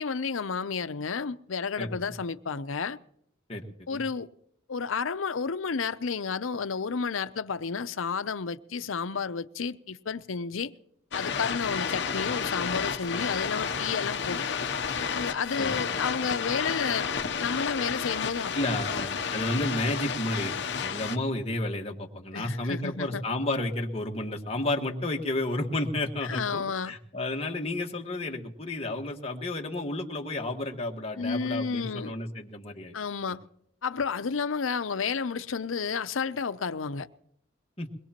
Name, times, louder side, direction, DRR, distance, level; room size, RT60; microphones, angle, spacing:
voice 1, 0.0-3.0 3.9-4.3 4.7-10.7 11.1-14.6 15.1-17.1 17.4-18.5 18.9-19.0 22.3-23.2 26.2-26.9 31.2-32.1 32.9-33.4 33.8-37.1, left 5 dB, 90° left, 0.7 m, -31 dB
voice 2, 1.8-2.1 3.5-4.0 15.5-15.7 18.5-20.6 20.8-32.9 33.3-33.4 37.8-37.9, left 1 dB, 30° left, 1.6 m, -31 dB
sound 1, 11.1-21.2, left 6 dB, 60° left, 0.8 m, -31 dB
22.5 x 20.5 x 3.0 m
head